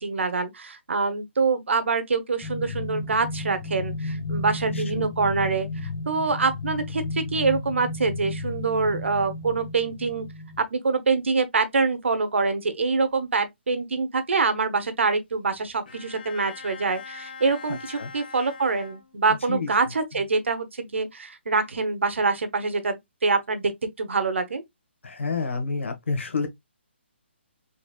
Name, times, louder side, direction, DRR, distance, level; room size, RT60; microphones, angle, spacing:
voice 1, 0.0-10.3 10.6-23.7 24.0-24.6, right 4 dB, 75° right, 1.0 m, -25 dB
sound 1, 2.4-10.6, left 2 dB, 5° left, 0.4 m, -33 dB
voice 2, 4.7-5.1 18.0-18.1 19.3-19.7 25.0-26.5, left 4 dB, 80° left, 1.4 m, -29 dB
Bowed string instrument, 15.9-19.5, left 5 dB, 45° left, 0.9 m, -43 dB
4.1 x 3.1 x 2.3 m
hypercardioid pair, 180°, 7 cm